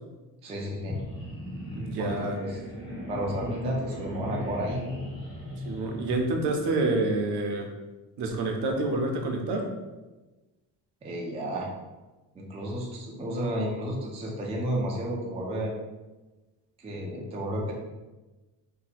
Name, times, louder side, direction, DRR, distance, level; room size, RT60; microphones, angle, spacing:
voice 1, 0.4-1.0 2.0-2.6 3.1-4.9 11.0-11.7 12.3-15.7 16.8-17.7, right 1 dB, 15° right, -2 dB, 0.3 m, -32 dB
sound 1, 0.8-7.0, equal, 15° left, 0.7 m, -38 dB
voice 2, 1.8-2.4 5.6-7.7 8.2-9.7, right 2 dB, 65° right, 3 dB, 0.7 m, -28 dB
2.8 x 2.1 x 4.1 m, 1.1 s
cardioid pair, 160°, 42 cm